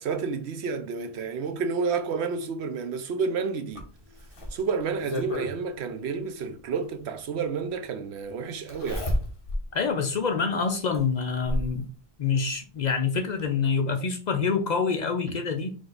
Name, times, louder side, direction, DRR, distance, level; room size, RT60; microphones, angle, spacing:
voice 1, 0.0-3.9 4.5-9.1, right 5 dB, 85° right, 0.9 m, -30 dB
Zipper (clothing), 3.8-5.5 7.0-7.1 8.7-9.7 10.1-10.2 10.9-11.8 13.0-13.1 13.4-13.5, left 1 dB, 35° left, 1.0 m, -31 dB
voice 2, 9.7-11.9 12.2-15.7, left 5 dB, 55° left, 0.5 m, -26 dB
5.0 x 2.3 x 3.8 m
omnidirectional pair, 1.1 m